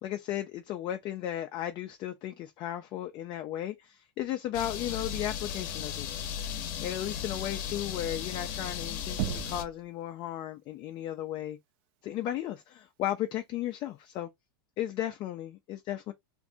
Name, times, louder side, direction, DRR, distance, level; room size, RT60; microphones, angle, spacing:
voice 1, 0.0-6.1 6.8-11.6 12.0-14.3 14.8-16.1, left 12 dB, 40° left, 0.4 m, -35 dB
sound 1, 4.5-9.6, left 8 dB, 55° left, 0.8 m, -36 dB
Knock, 9.2-9.8, right 11 dB, 50° right, 0.5 m, -33 dB
2.6 x 2.5 x 3.4 m
hypercardioid pair, 120°, 12 cm